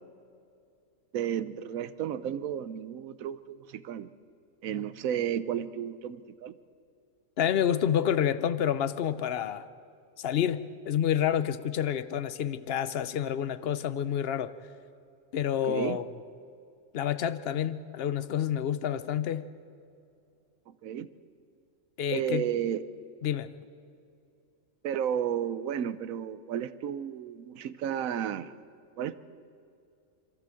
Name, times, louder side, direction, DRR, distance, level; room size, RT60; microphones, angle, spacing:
voice 1, 1.1-4.1 4.6-6.6 15.6-16.0 20.7-21.1 22.1-22.8 24.8-28.5 29.0-29.1, right 9 dB, 75° right, 14 dB, 1.2 m, -32 dB
voice 2, 7.4-9.7 10.2-14.5 15.3-16.0 16.9-19.5 22.0-22.4 23.2-23.5, left 9 dB, 55° left, 14 dB, 0.9 m, -28 dB
26.5 x 13.5 x 7.6 m, 2.5 s
omnidirectional pair, 1.4 m